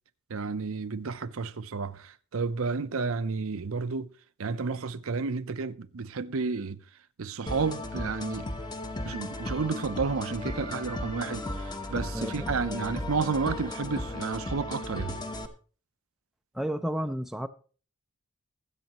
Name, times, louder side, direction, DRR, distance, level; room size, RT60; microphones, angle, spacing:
voice 1, 0.3-4.1 4.4-6.8 7.2-8.5 9.0-15.2, right 4 dB, 65° right, 0.7 m, -31 dB
sound 1, 7.5-15.5, left 1 dB, 20° left, 1.0 m, -35 dB
voice 2, 12.1-12.5 16.5-17.5, equal, ahead, 0.5 m, -32 dB
21.0 x 8.3 x 3.0 m
head